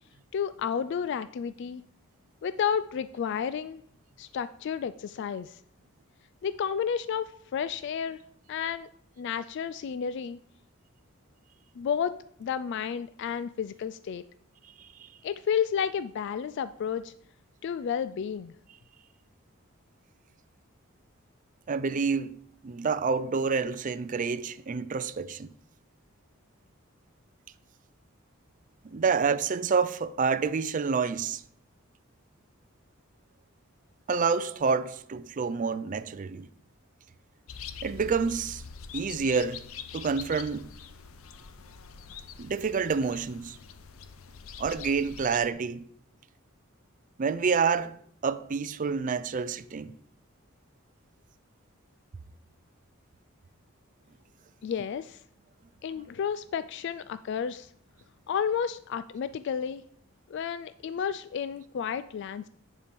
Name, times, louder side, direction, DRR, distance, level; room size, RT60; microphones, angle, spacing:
voice 1, 0.3-1.8 2.4-3.8 4.2-5.6 6.4-8.2 8.5-8.9 9.2-10.4 11.8-14.3 15.2-17.1 17.6-18.5 54.6-55.2 55.8-57.7 58.3-59.8 60.3-62.5, left 7 dB, 60° left, 0.3 m, -31 dB
voice 2, 14.8-15.1 21.7-22.4 22.6-25.5 28.8-31.4 34.1-36.5 37.8-38.6 38.9-39.6 39.9-40.7 42.4-43.6 44.6-45.9 47.2-49.9 55.9-56.0, right 5 dB, 40° right, 0.4 m, -28 dB
sound 1, 37.5-45.5, left 7 dB, 85° left, 0.7 m, -44 dB
10.0 x 4.6 x 5.2 m
head